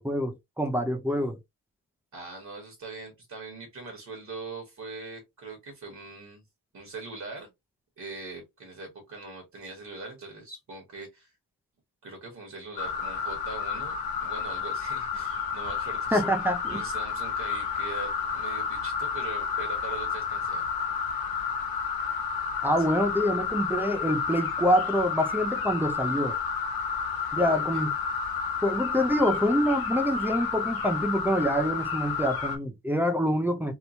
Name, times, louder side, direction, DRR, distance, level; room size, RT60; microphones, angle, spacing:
voice 1, 0.0-1.4 16.1-16.8 22.6-26.4 27.3-27.9 28.6-33.8, equal, 5° right, 0.3 m, -26 dB
voice 2, 2.1-6.4 6.7-7.5 8.0-11.3 12.0-13.9 14.2-16.2 16.7-20.7 22.8-22.9 27.3-27.8, right 3 dB, 50° right, 1.1 m, -41 dB
sound 1, 12.8-32.6, left 6 dB, 70° left, 0.8 m, -31 dB
3.0 x 2.1 x 2.5 m
wide cardioid pair, 150°, 37 cm